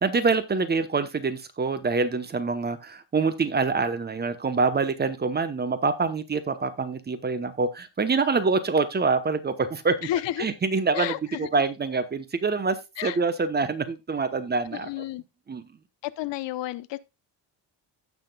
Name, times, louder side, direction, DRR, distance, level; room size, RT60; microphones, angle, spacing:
voice 1, 0.0-10.1 10.4-11.1 11.4-14.9 15.5-15.6, right 4 dB, 25° right, 0.9 m, -25 dB
voice 2, 10.0-10.5 10.9-11.5 13.0-13.2 14.7-15.2 16.0-17.0, left 13 dB, 80° left, 0.9 m, -31 dB
16.0 x 5.9 x 2.3 m
cardioid pair, 170°, 43 cm